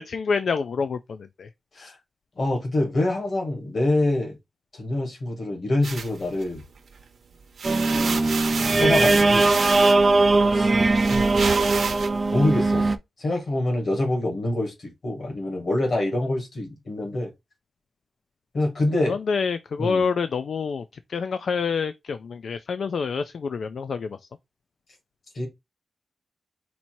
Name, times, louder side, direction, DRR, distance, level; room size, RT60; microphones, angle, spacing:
voice 1, 0.0-1.5 1.8-1.9 19.1-20.8 21.1-24.2, left 5 dB, 70° left, 0.3 m, -27 dB
voice 2, 2.4-4.4 4.7-6.6 7.9-8.3 8.8-9.6 10.5-10.7 11.1-11.3 12.3-12.9 13.2-17.3 18.5-19.2 19.8-20.1 25.4-25.5, left 1 dB, 50° left, 1.9 m, -25 dB
sound 1, 5.8-7.0 7.4-12.1, right 5 dB, 70° right, 0.7 m, -31 dB
sound 2, 7.6-13.0, right 3 dB, 30° right, 0.4 m, -20 dB
4.2 x 2.7 x 4.4 m
wide cardioid pair, 180°, 0 cm